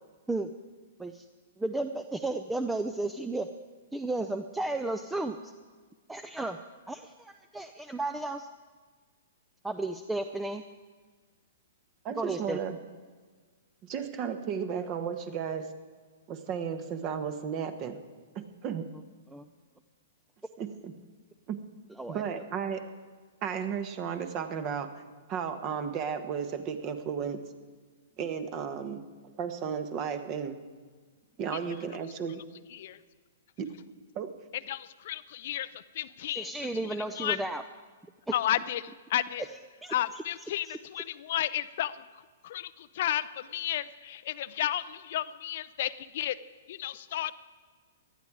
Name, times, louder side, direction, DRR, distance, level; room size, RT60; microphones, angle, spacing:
voice 1, 1.6-3.5 3.9-5.5 6.1-6.6 6.9-8.5 9.6-10.6 12.2-12.6 19.3-19.5 22.0-22.2 36.3-37.6 39.8-40.2 40.6-40.8, right 2 dB, 5° right, 8 dB, 0.6 m, -33 dB
voice 2, 12.0-12.8 13.8-15.7 16.3-18.0 18.3-18.9 20.6-20.9 21.5-21.6 22.1-22.9 23.4-25.0 25.3-27.4 28.2-29.0 29.4-30.6 31.4-32.4 33.6-33.7 34.1-34.3, right 7 dB, 35° right, 9 dB, 1.4 m, -34 dB
voice 3, 34.7-36.5 37.2-37.4 38.3-39.4 39.9-42.0 42.4-46.4 46.7-47.3, left 12 dB, 55° left, 14 dB, 0.5 m, -32 dB
18.0 x 12.0 x 4.9 m, 1.5 s
hypercardioid pair, 120°, 0 cm